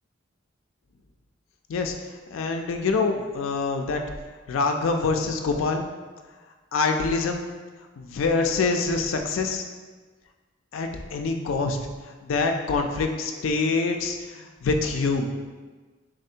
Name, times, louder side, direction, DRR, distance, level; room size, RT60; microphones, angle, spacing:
voice 1, 2.3-4.0 4.5-5.8 6.7-7.4 8.0-9.6 10.7-11.8 12.2-15.3, left 4 dB, 90° left, 4 dB, 0.4 m, -25 dB
3.8 x 3.3 x 2.8 m, 1.4 s
head